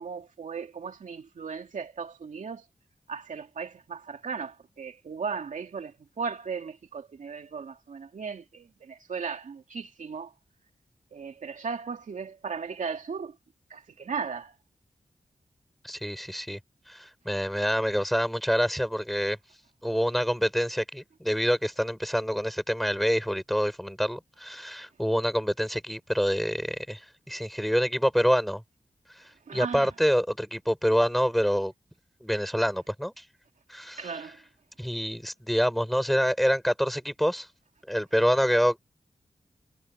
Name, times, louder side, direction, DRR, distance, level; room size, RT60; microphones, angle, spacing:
voice 1, 0.0-2.6 3.1-10.3 11.1-13.4 13.7-14.5 29.5-29.9 34.0-34.4, right 5 dB, 90° right, 2.6 m, -36 dB
voice 2, 15.8-16.6 16.9-19.4 19.8-28.6 29.5-31.7 32.2-33.2 33.7-34.1 34.8-37.5 37.9-38.8, equal, ahead, 5.4 m, -26 dB
wide cardioid pair, 130°, 13 cm